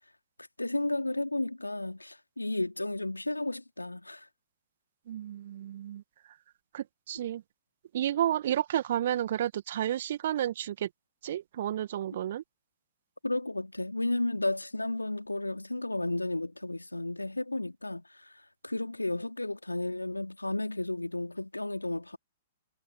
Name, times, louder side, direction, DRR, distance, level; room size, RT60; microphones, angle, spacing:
voice 1, 0.6-4.3 13.2-18.4 18.6-22.2, left 2 dB, 85° left, 3.1 m, -33 dB
voice 2, 5.1-6.0 6.7-7.4 7.9-10.9 11.2-12.4, right 11 dB, 50° right, 2.1 m, -31 dB
figure-of-eight pair, 110°, 0 cm